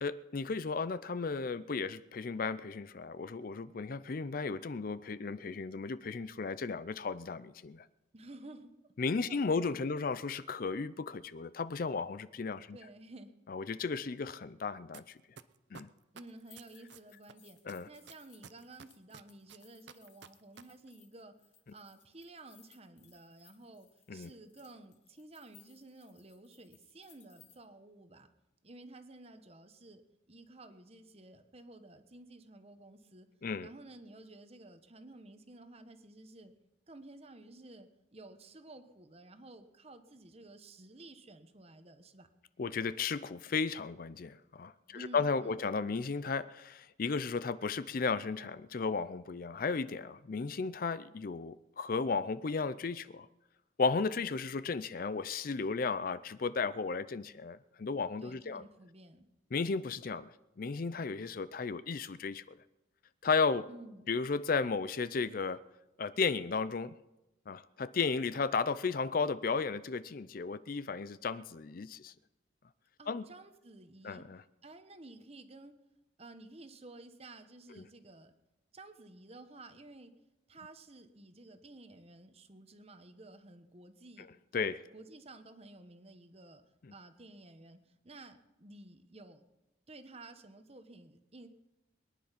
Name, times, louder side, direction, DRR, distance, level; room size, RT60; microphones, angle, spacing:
voice 1, 0.0-7.9 9.0-12.8 13.5-15.2 15.7-15.9 17.7-17.9 24.1-24.3 33.4-33.7 42.6-53.3 53.8-58.6 59.5-60.3 60.6-62.4 63.2-63.7 64.1-65.6 66.0-66.9 67.5-72.1 73.1-73.2 74.0-74.4 84.2-84.3 84.5-84.8, left 4 dB, 45° left, 0.4 m, -34 dB
voice 2, 8.1-8.8 9.3-9.7 12.7-13.3 16.1-17.6 17.9-21.4 21.7-28.3 28.6-33.3 33.6-36.6 36.9-42.3 44.9-45.6 58.2-59.3 63.7-64.1 73.0-74.3 74.6-75.7 76.2-78.3 78.7-80.2 80.5-84.3 84.5-86.6 86.9-89.4 89.9-91.5, right 2 dB, 30° right, 1.1 m, -53 dB
sound 1, 14.9-15.0 15.4-17.3 17.7-20.6 20.9-21.0, right 6 dB, 60° right, 0.7 m, -51 dB
sound 2, 16.2-27.5, left 9 dB, 70° left, 2.6 m, -65 dB
22.5 x 10.5 x 5.8 m
head